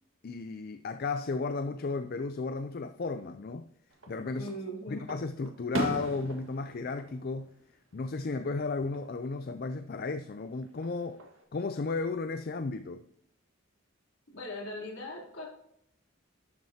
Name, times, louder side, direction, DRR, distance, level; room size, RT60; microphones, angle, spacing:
voice 1, 0.2-3.7 4.1-4.5 4.9-7.5 7.9-11.2 11.5-13.0, left 3 dB, 45° left, 0.4 m, -34 dB
Fireworks, 3.9-4.6 5.1-8.2 8.5-9.1 10.6-11.4, right 1 dB, 75° right, 1.6 m, -38 dB
voice 2, 4.3-5.0 14.3-15.5, equal, 65° left, 3.4 m, -39 dB
12.0 x 7.4 x 2.8 m
head